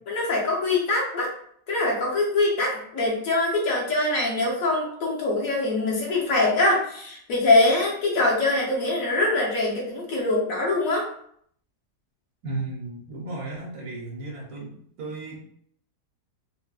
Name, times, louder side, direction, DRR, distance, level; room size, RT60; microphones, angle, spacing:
voice 1, 0.1-1.3 1.7-11.1, left 2 dB, 60° left, -3 dB, 1.2 m, -23 dB
voice 2, 12.4-14.7 15.0-15.4, right 2 dB, 70° right, -2 dB, 1.2 m, -34 dB
3.8 x 2.1 x 2.3 m, 0.64 s
omnidirectional pair, 1.7 m